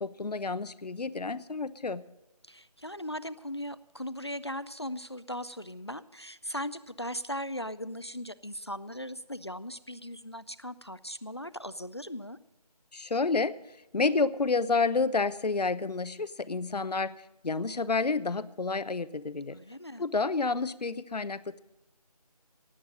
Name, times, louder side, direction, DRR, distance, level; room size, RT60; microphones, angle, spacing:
voice 1, 0.0-2.0 12.9-13.5 13.9-17.2 17.4-19.6 20.0-21.6, left 4 dB, 85° left, 15 dB, 0.8 m, -29 dB
voice 2, 2.4-12.4 19.5-20.1, equal, 45° left, 15 dB, 0.4 m, -38 dB
17.0 x 8.8 x 6.3 m, 0.94 s
figure-of-eight pair, 180°, 20 cm